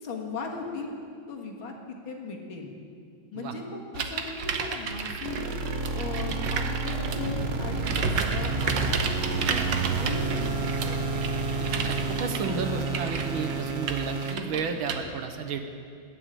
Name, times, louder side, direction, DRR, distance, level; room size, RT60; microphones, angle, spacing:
voice 1, 0.0-0.9 1.3-2.7 3.3-5.6 5.9-11.0 12.4-12.8 14.4-14.7, left 4 dB, 75° left, 1 dB, 2.6 m, -38 dB
sound 1, 3.9-7.3 7.8-15.0, right 5 dB, 65° right, 1.6 m, -32 dB
sound 2, 5.2-14.3, right 4 dB, 45° right, 0.8 m, -30 dB
sound 3, 7.5-13.1, equal, 5° left, 4.8 m, -50 dB
voice 2, 11.7-15.6, right 5 dB, 80° right, 6 dB, 1.9 m, -32 dB
20.5 x 6.8 x 8.9 m, 2.4 s
omnidirectional pair, 2.2 m